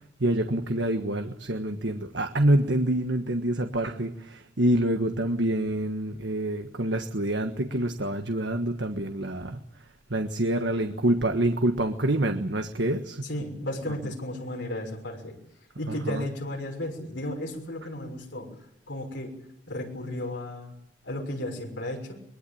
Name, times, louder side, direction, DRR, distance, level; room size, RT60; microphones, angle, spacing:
voice 1, 0.2-9.6 10.1-13.3 15.9-16.3, right 1 dB, 80° right, 6 dB, 1.5 m, -26 dB
voice 2, 13.2-15.3 15.8-18.5 18.9-19.3 19.7-20.7 21.0-22.1, left 1 dB, 85° left, 1 dB, 6.2 m, -34 dB
22.5 x 22.0 x 8.7 m, 0.76 s
head